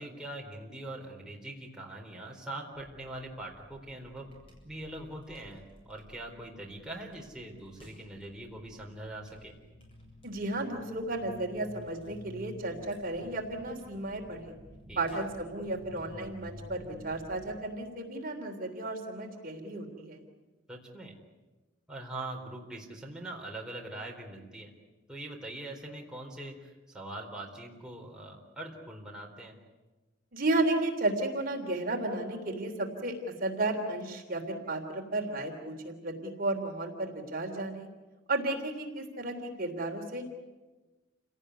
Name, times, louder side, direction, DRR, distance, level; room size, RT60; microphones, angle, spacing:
voice 1, 0.0-4.3 4.6-9.5 14.9-15.0 20.7-21.1 21.9-24.7 25.1-29.6, right 1 dB, 5° right, -2 dB, 4.0 m, -42 dB
sound 1, 2.7-17.5, left 1 dB, 30° left, 7.7 m, -52 dB
voice 2, 10.2-14.5 15.0-20.2 30.3-33.1 33.4-37.9 38.3-40.2, right 2 dB, 45° right, 3 dB, 3.4 m, -33 dB
29.0 x 18.0 x 9.7 m, 1.2 s
head